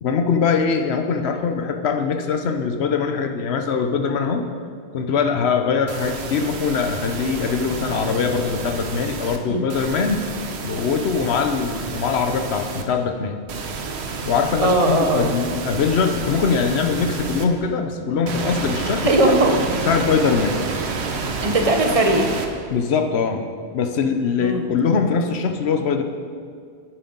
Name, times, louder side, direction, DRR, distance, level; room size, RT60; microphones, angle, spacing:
voice 1, 0.0-4.5 4.9-10.2 10.6-13.4 14.2-19.1 19.5-19.6 19.9-20.6 22.7-23.5 23.7-26.0, left 5 dB, 75° left, 6 dB, 1.0 m, -22 dB
sound 1, 5.9-9.4 9.7-12.8 13.5-17.4 18.3-22.5, right 4 dB, 75° right, 1.1 m, -29 dB
voice 2, 14.6-15.3 19.0-19.7 21.4-22.3 24.4-24.7, right 1 dB, 35° right, 4 dB, 0.9 m, -19 dB
10.5 x 9.2 x 3.9 m, 2.2 s
omnidirectional pair, 1.1 m